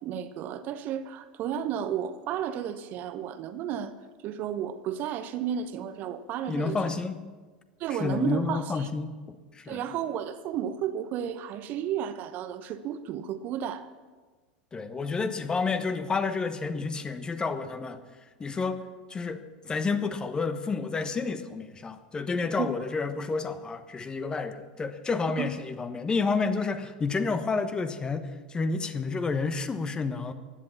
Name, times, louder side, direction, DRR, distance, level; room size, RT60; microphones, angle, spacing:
voice 1, 0.0-3.9 4.2-6.8 7.8-8.9 9.7-13.9 22.6-22.7 25.4-25.5, right 9 dB, 40° right, 1.0 m, -33 dB
voice 2, 6.5-7.2 7.9-9.9 14.7-18.0 18.4-18.8 19.1-30.3, left 4 dB, 20° left, 1.1 m, -30 dB
15.5 x 11.0 x 7.2 m
figure-of-eight pair, 80°, 4 cm